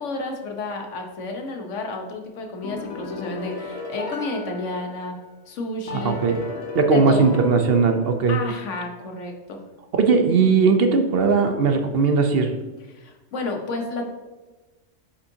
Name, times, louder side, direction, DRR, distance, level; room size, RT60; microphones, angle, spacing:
voice 1, 0.0-5.1 5.5-6.2 6.9-7.4 8.3-9.6 12.9-14.1, left 3 dB, 90° left, 3 dB, 1.3 m, -31 dB
sound 1, 2.6-5.3 5.9-8.4, left 4 dB, 65° left, 1.4 m, -35 dB
voice 2, 5.9-6.4 6.7-8.4 9.9-12.5, right 5 dB, 60° right, 6 dB, 0.8 m, -19 dB
8.3 x 5.4 x 2.7 m, 1.2 s
omnidirectional pair, 1.2 m